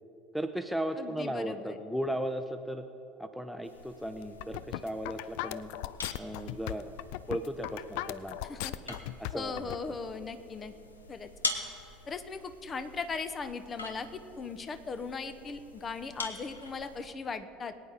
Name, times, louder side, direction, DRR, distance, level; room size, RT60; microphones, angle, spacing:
voice 1, 0.3-2.8 3.2-5.7 6.2-6.9 7.3-8.4 8.9-9.7, equal, ahead, 9 dB, 0.7 m, -36 dB
voice 2, 1.0-1.8 8.4-8.7 9.3-10.7 11.1-11.3 12.1-17.7, left 4 dB, 30° left, 10 dB, 0.9 m, -38 dB
sound 1, 3.6-17.1, left 3 dB, 85° left, 1.0 m, -44 dB
sound 2, 4.2-9.8, left 15 dB, 60° left, 0.4 m, -37 dB
22.5 x 9.4 x 4.0 m, 2.8 s
figure-of-eight pair, 70°, 0 cm